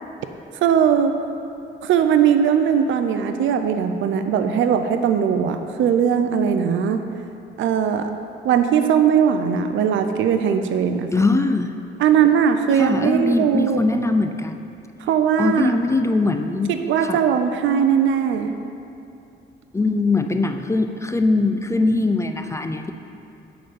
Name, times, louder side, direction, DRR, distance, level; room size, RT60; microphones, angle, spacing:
voice 1, 0.6-1.2 1.8-7.0 7.6-8.1 8.4-11.1 12.0-13.8 15.0-15.7 16.7-18.6, right 8 dB, 75° right, 7 dB, 0.6 m, -19 dB
voice 2, 11.1-11.7 12.8-14.7 15.4-16.7 17.0-17.2 19.7-22.9, left 2 dB, 15° left, 6 dB, 0.5 m, -21 dB
11.0 x 3.9 x 7.0 m, 2.7 s
cardioid pair, 90°, 20 cm